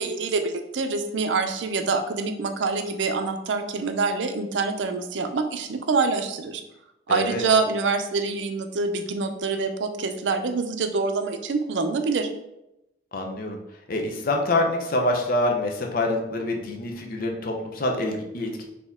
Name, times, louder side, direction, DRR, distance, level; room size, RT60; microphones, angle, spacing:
voice 1, 0.0-6.6 7.1-12.3, right 4 dB, 80° right, 7 dB, 0.5 m, -26 dB
voice 2, 7.1-7.4 13.1-13.6 13.9-18.6, left 2 dB, 50° left, 2 dB, 0.6 m, -26 dB
4.3 x 2.8 x 3.5 m, 0.89 s
head